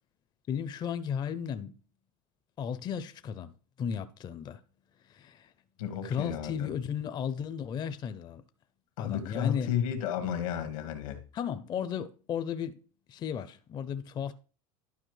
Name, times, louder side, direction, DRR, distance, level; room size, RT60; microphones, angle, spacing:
voice 1, 0.5-1.7 2.6-3.5 3.8-4.6 5.0-5.5 6.0-8.4 9.0-9.7 11.3-12.8 13.1-14.3, left 8 dB, 25° left, 0.4 m, -34 dB
voice 2, 5.8-6.7 9.0-11.2, left 9 dB, 85° left, 1.5 m, -32 dB
11.5 x 4.9 x 3.1 m
supercardioid pair, 135°, 17 cm